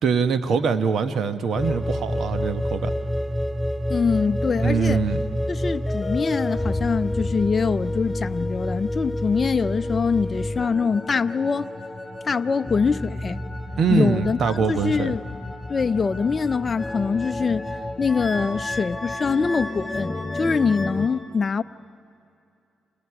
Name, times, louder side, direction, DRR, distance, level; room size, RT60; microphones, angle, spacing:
voice 1, 0.0-2.9 4.6-5.2 13.8-15.1, right 5 dB, 65° right, 1.2 m, -23 dB
sound 1, 1.5-21.1, left 1 dB, 10° left, 6.6 m, -29 dB
voice 2, 3.9-5.0 5.5-11.7 12.2-13.4 13.9-15.2 15.7-17.7 18.0-21.6, left 5 dB, 40° left, 0.5 m, -24 dB
29.5 x 26.0 x 4.9 m
supercardioid pair, 55°, 0 cm